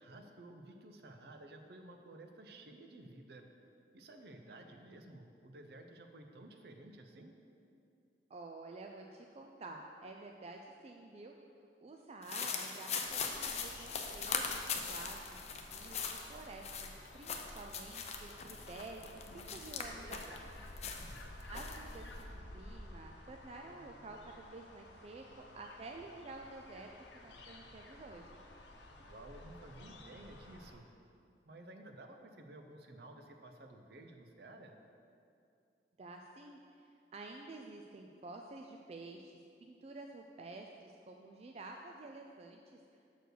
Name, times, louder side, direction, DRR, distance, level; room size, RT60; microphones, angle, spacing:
voice 1, 0.0-3.5 3.9-7.4 20.8-21.3 29.1-30.9 31.5-34.8, right 1 dB, 60° right, 5 dB, 0.7 m, -54 dB
voice 2, 4.5-4.9 8.3-11.4 11.8-20.4 21.5-28.4 36.0-42.8, right 2 dB, 35° right, 2 dB, 0.3 m, -50 dB
sound 1, 12.2-20.4 20.8-22.2, left 6 dB, 40° left, 0.5 m, -40 dB
sound 2, 13.0-30.7, left 1 dB, 85° left, 0.8 m, -53 dB
6.2 x 4.5 x 6.6 m, 2.5 s
head